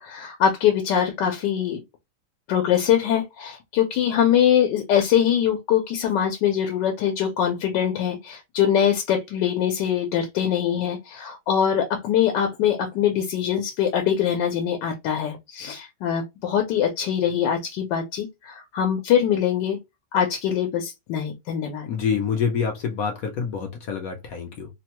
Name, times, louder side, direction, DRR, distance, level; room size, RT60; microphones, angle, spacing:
voice 1, 0.0-1.8 2.5-19.8 20.1-21.9, left 9 dB, 85° left, 1.3 m, -23 dB
voice 2, 21.8-24.7, left 6 dB, 65° left, 1.0 m, -27 dB
3.2 x 2.1 x 2.8 m
omnidirectional pair, 1.8 m